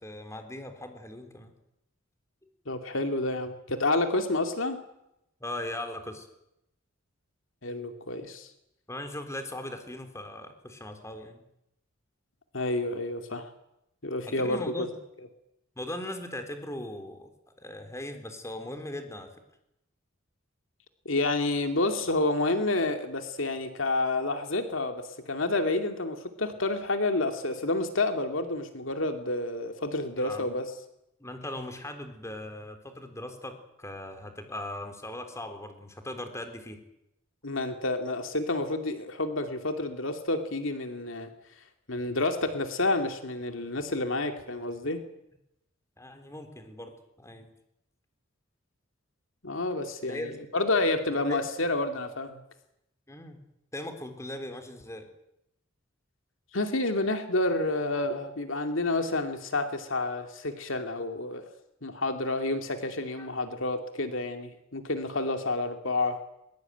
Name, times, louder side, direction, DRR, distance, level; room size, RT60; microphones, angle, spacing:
voice 1, 0.0-1.5 5.4-6.3 8.9-11.4 14.3-15.0 15.8-17.3 17.6-19.3 30.2-30.5 31.2-36.8 46.0-46.9 47.2-47.5 50.1-50.4 51.3-51.4 53.1-53.4 53.7-55.1 63.2-63.3, left 1 dB, 15° left, 6 dB, 3.7 m, -39 dB
voice 2, 2.7-4.8 7.6-8.5 12.5-13.5 14.0-14.9 21.0-30.7 37.4-41.3 41.9-45.0 49.4-52.4 56.5-61.4 61.8-66.2, left 2 dB, 70° left, 6 dB, 2.6 m, -29 dB
22.5 x 21.5 x 9.3 m, 0.84 s
head